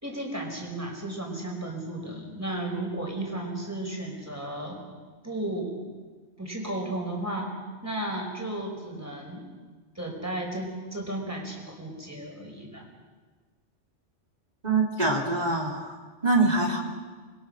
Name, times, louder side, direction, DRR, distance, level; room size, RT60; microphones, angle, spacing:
voice 1, 0.0-4.8 5.2-5.8 6.4-7.5 7.8-9.5 9.9-12.8, right 1 dB, 15° right, 0 dB, 5.0 m, -34 dB
voice 2, 14.6-15.9 16.2-16.8, right 2 dB, 35° right, 0 dB, 3.0 m, -24 dB
26.5 x 21.5 x 6.5 m, 1.4 s
omnidirectional pair, 1.3 m